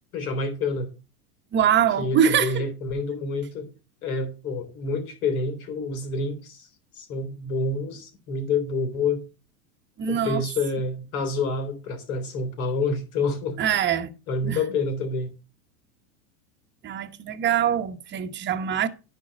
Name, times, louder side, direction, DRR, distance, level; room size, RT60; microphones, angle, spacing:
voice 1, 0.1-0.9 2.0-3.7 4.0-6.7 7.0-9.2 10.1-13.6 14.3-15.3, left 3 dB, 70° left, 3.6 m, -28 dB
voice 2, 1.5-2.6 10.0-10.4 13.6-14.1 14.4-14.6 16.8-18.9, right 8 dB, 25° right, 1.0 m, -23 dB
10.5 x 4.6 x 6.4 m
supercardioid pair, 120°, 43 cm